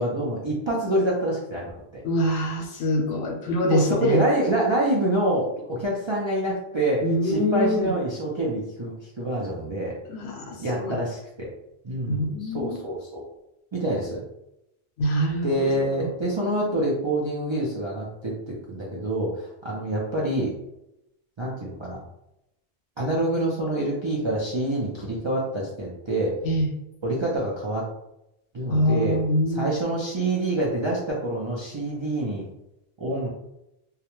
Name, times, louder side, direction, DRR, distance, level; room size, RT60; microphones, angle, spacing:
voice 1, 0.0-2.0 3.7-9.9 10.6-11.5 11.8-13.2 13.7-14.2 15.4-20.5 21.4-22.0 23.0-26.3 27.0-27.8 28.5-29.2 29.5-32.5 33.0-33.3, right 1 dB, 45° right, -6 dB, 0.3 m, -26 dB
voice 2, 2.0-4.2 7.0-7.9 10.1-11.0 12.1-12.8 15.0-16.1 26.4-26.7 28.7-29.7, equal, 80° left, 2 dB, 0.8 m, -25 dB
2.3 x 2.0 x 2.9 m, 0.85 s
omnidirectional pair, 1.1 m